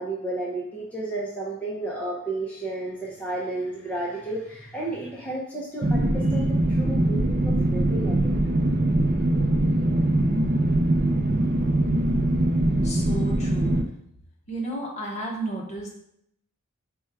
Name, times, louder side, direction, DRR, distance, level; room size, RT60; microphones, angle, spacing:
voice 1, 0.0-8.4, right 2 dB, 5° left, -5 dB, 0.6 m, -32 dB
sound 1, 5.8-13.8, right 1 dB, 45° right, 0.5 m, -22 dB
voice 2, 12.8-13.8 14.5-16.0, right 1 dB, 35° left, -1 dB, 1.0 m, -33 dB
4.3 x 2.3 x 4.7 m, 0.74 s
head